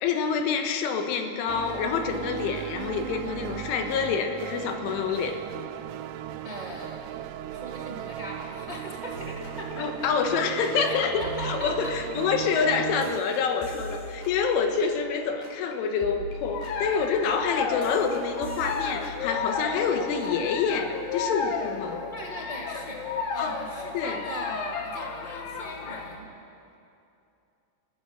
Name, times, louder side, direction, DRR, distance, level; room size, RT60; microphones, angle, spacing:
voice 1, 0.0-5.4 9.8-22.0 23.4-23.6 23.9-24.2, left 6 dB, 90° left, 5 dB, 3.9 m, -27 dB
sound 1, 1.5-13.2, right 11 dB, 85° right, 3.1 m, -37 dB
voice 2, 6.4-10.4 10.8-11.9 22.1-23.0 23.3-26.3, left 1 dB, 50° right, -2 dB, 0.5 m, -39 dB
sound 2, 9.1-10.9 11.2-15.7 16.0-20.0 20.2-20.5, equal, 45° left, 4.8 m, -42 dB
sound 3, 16.5-26.2, left 5 dB, 60° left, 2.5 m, -33 dB
30.0 x 16.5 x 6.5 m, 2.7 s
omnidirectional pair, 5.4 m